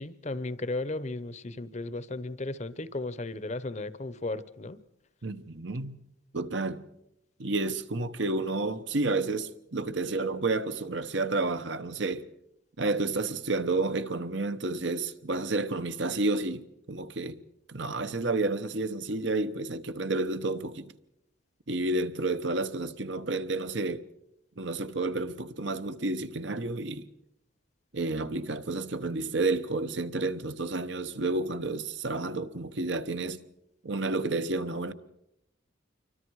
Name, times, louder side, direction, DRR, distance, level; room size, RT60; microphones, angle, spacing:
voice 1, 0.0-4.8, left 2 dB, 35° left, 0.8 m, -35 dB
voice 2, 5.2-6.0 6.3-6.8 7.4-12.3 12.8-17.4 17.7-20.9 21.7-24.1 24.6-27.1 27.9-33.4 33.8-34.9, right 2 dB, 65° right, 1.1 m, -30 dB
27.0 x 24.0 x 4.8 m
head